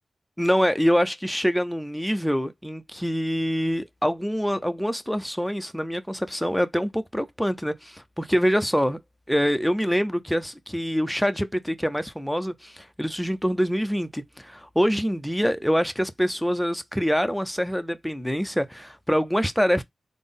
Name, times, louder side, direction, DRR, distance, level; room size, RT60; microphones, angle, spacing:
voice 1, 0.4-9.0 9.3-19.8, equal, ahead, 0.4 m, -25 dB
3.8 x 2.0 x 3.4 m
cardioid pair, 65°, 0 cm